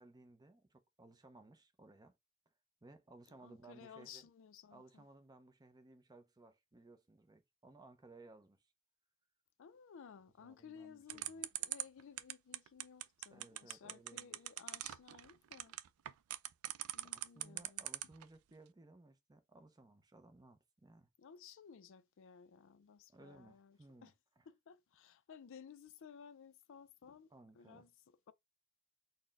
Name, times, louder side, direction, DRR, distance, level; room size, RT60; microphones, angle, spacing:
voice 1, 0.0-2.2 2.8-4.3 4.7-8.6 10.4-11.4 13.3-14.3 17.0-21.1 23.1-24.5 27.3-27.9, right 2 dB, 20° right, 0.5 m, -60 dB
voice 2, 3.3-5.1 9.6-15.7 16.9-17.9 21.2-24.1 24.5-28.3, left 6 dB, 60° left, 0.4 m, -57 dB
sound 1, 11.1-18.2, right 14 dB, 70° right, 0.3 m, -41 dB
4.1 x 2.1 x 3.4 m
head